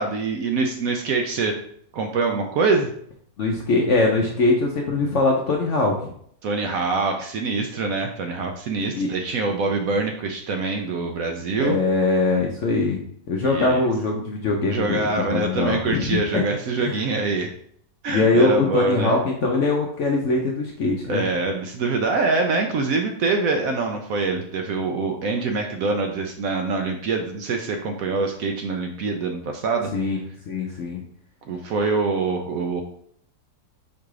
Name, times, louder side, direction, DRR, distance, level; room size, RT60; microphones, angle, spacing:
voice 1, 0.0-1.6 1.9-2.9 6.4-11.8 13.4-13.9 14.7-17.5 18.0-19.1 21.1-29.9 31.5-32.8, right 3 dB, 70° right, 3 dB, 0.8 m, -24 dB
voice 2, 3.4-6.1 8.9-9.1 11.6-13.0 13.3-16.4 16.8-17.0 18.1-21.3 29.9-30.2 30.5-31.0, left 3 dB, 65° left, 0 dB, 0.7 m, -22 dB
4.8 x 2.4 x 4.7 m, 0.65 s
omnidirectional pair, 1.8 m